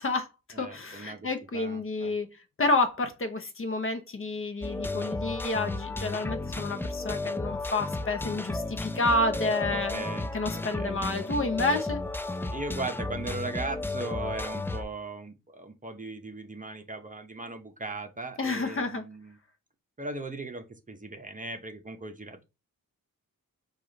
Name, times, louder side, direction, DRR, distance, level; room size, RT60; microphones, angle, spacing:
voice 1, 0.0-2.3 2.6-10.1 10.3-12.0 18.4-19.0, left 2 dB, 40° left, 0.8 m, -29 dB
voice 2, 0.5-2.2 9.7-11.0 12.5-19.4 20.0-22.4, right 2 dB, 25° right, 0.7 m, -38 dB
sound 1, 4.6-14.8, left 2 dB, 5° left, 0.3 m, -33 dB
4.8 x 2.5 x 3.9 m
cardioid pair, 90°, 35 cm